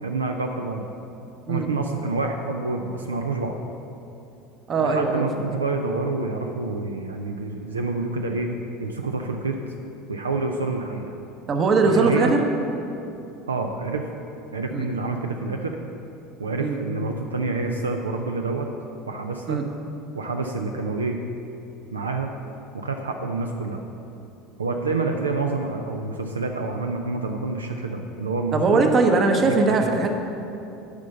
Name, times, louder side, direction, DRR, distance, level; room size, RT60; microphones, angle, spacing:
voice 1, 0.0-0.9 1.5-3.5 4.8-8.5 8.8-9.6 10.1-11.1 11.8-12.3 13.5-14.0 14.5-15.8 16.4-18.7 19.1-19.6 20.1-21.2 21.9-22.3 22.7-23.8 24.6-28.9 29.5-30.0, right 3 dB, 80° right, 3 dB, 0.5 m, -27 dB
voice 2, 4.7-5.3 11.5-12.4 14.7-14.9 16.6-16.8 19.5-19.7 28.5-30.1, right 3 dB, 35° right, 4 dB, 1.0 m, -20 dB
8.2 x 5.2 x 6.8 m, 2.8 s
figure-of-eight pair, 70°, 0 cm